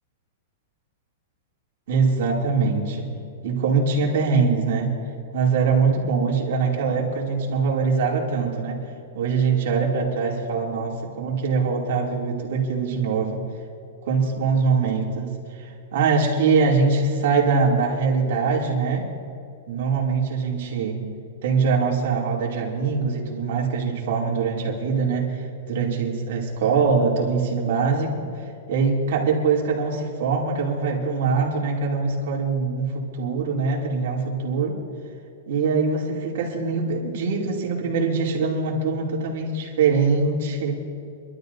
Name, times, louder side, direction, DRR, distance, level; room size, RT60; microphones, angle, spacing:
voice 1, 1.9-3.1 3.4-4.9 5.3-8.8 9.1-13.4 14.1-19.1 19.7-21.0 21.4-28.3 28.7-34.8 35.5-40.8, right 5 dB, 55° right, -2 dB, 2.6 m, -23 dB
26.0 x 12.5 x 2.7 m, 2.6 s
supercardioid pair, 175°, 0 cm